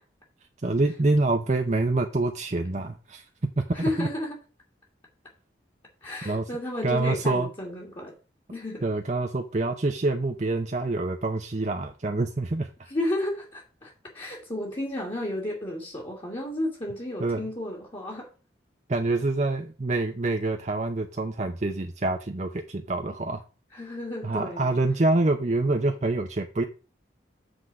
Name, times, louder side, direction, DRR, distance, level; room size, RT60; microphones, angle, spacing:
voice 1, 0.6-3.3 3.6-3.7 4.0-4.1 6.3-6.4 6.8-7.5 8.8-12.9 17.2-17.5 18.9-23.4 24.2-26.6, right 2 dB, 40° right, 5 dB, 0.6 m, -26 dB
voice 2, 3.7-4.4 6.0-8.1 8.5-8.8 12.9-18.3 23.7-24.8, left 1 dB, 30° left, -3 dB, 1.6 m, -32 dB
7.8 x 3.9 x 6.1 m, 0.34 s
head